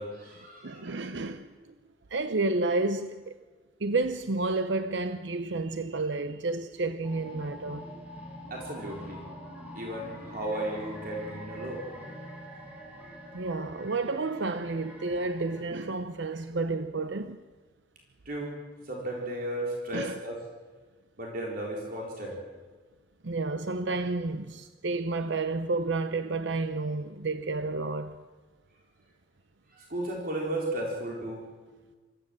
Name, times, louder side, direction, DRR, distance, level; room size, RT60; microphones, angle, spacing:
voice 1, 0.0-1.0 8.5-9.2 9.8-11.8 18.3-18.6 18.9-20.4 21.2-22.4 29.8-31.5, right 1 dB, 50° right, 4.0 m, -34 dB
voice 2, 0.6-1.5 2.1-3.3 3.8-7.9 13.3-17.4 19.9-20.2 23.2-28.2, right 3 dB, 70° right, 0.7 m, -30 dB
sound 1, 7.0-15.6, equal, 10° right, 4.8 m, -45 dB
25.0 x 15.5 x 7.5 m
head